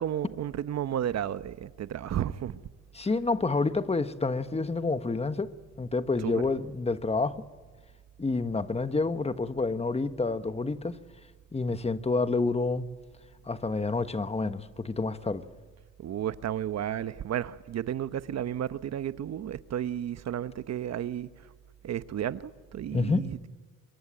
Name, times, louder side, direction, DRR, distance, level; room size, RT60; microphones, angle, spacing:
voice 1, 0.0-2.6 6.2-6.3 16.0-21.3 21.8-23.5, right 10 dB, 60° right, 1.0 m, -32 dB
voice 2, 2.9-7.4 8.2-11.0 11.5-12.9 13.5-15.5 22.9-23.2, left 3 dB, 20° left, 1.4 m, -28 dB
26.0 x 22.5 x 9.1 m
cardioid pair, 90°, 30 cm